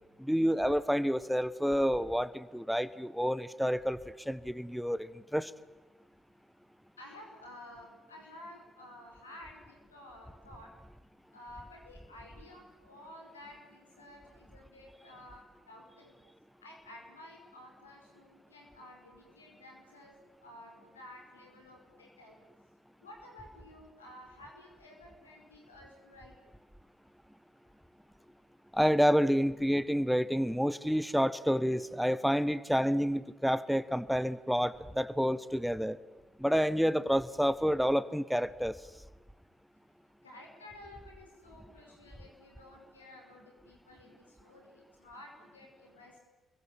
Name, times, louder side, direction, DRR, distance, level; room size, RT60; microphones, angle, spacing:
voice 1, 0.2-5.5 28.7-36.0 36.4-38.8, equal, ahead, 16 dB, 1.3 m, -29 dB
voice 2, 7.0-10.7 11.3-16.2 16.6-22.4 23.0-26.3 40.2-46.2, left 1 dB, 90° left, 1 dB, 5.4 m, -52 dB
28.5 x 22.5 x 9.0 m, 1.2 s
figure-of-eight pair, 45°, 0 cm